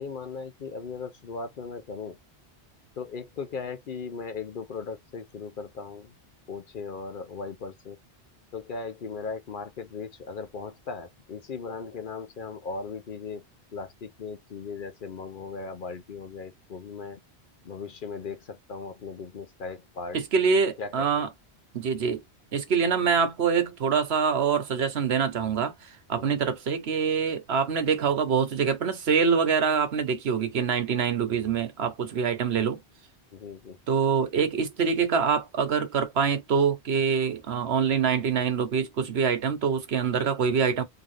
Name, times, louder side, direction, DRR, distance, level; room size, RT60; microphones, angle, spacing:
voice 1, 0.0-2.2 3.0-6.1 6.5-8.0 8.5-13.4 13.7-17.2 17.6-20.2 20.8-20.9 26.1-26.4 33.3-33.8, left 4 dB, 55° left, 0.7 m, -37 dB
voice 2, 20.1-21.3 21.7-22.2 22.5-25.7 26.1-32.8 33.9-40.8, right 6 dB, 70° right, 1.1 m, -25 dB
3.7 x 2.7 x 3.1 m
omnidirectional pair, 1.1 m